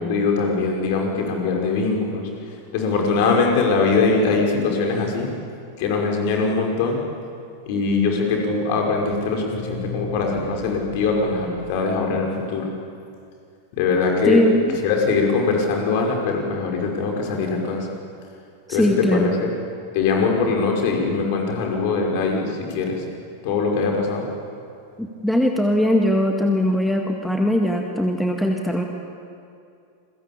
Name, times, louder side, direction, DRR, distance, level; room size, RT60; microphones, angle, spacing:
voice 1, 0.0-2.2 2.7-5.3 5.8-7.0 7.7-12.7 13.7-14.4 14.8-17.9 18.7-19.5 19.9-23.0 23.4-24.3, left 4 dB, 50° left, 1 dB, 5.6 m, -22 dB
sound 1, 7.8-12.5, right 1 dB, 75° right, 5.8 m, -36 dB
voice 2, 14.3-14.8 18.7-19.3 25.0-28.8, equal, ahead, 2 dB, 2.0 m, -20 dB
29.0 x 22.5 x 8.8 m, 2.4 s
figure-of-eight pair, 90°, 0 cm